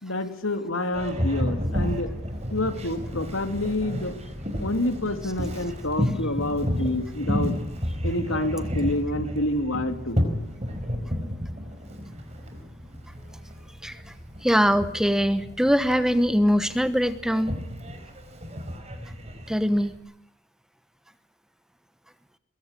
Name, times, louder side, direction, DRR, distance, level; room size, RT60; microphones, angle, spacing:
voice 1, 0.0-2.1 2.5-4.1 4.6-7.5 8.0-10.2, left 1 dB, 85° left, 7 dB, 2.8 m, -28 dB
Boat Water vehicle, 0.9-19.9, equal, 30° right, 5.0 m, -32 dB
voice 2, 14.4-17.5 19.5-19.9, equal, 5° right, 12 dB, 1.0 m, -22 dB
23.5 x 22.5 x 9.8 m, 0.75 s
head